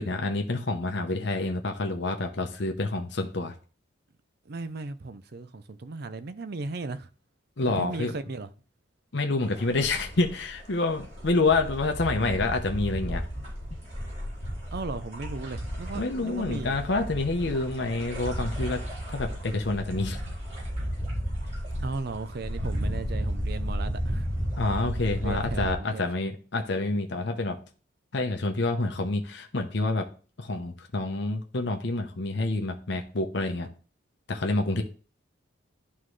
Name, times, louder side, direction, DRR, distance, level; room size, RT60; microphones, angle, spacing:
voice 1, 0.0-3.5 7.6-8.1 9.1-13.2 15.9-18.8 19.1-20.2 24.6-27.6 28.1-30.1 30.4-33.7 34.3-34.8, left 2 dB, 60° left, 0.8 m, -28 dB
voice 2, 4.5-7.1 7.7-8.5 14.7-16.8 21.8-24.3 25.2-26.0, right 3 dB, 50° right, 0.5 m, -36 dB
sound 1, 9.4-25.7, equal, 35° right, 3.8 m, -33 dB
11.0 x 3.7 x 3.2 m
head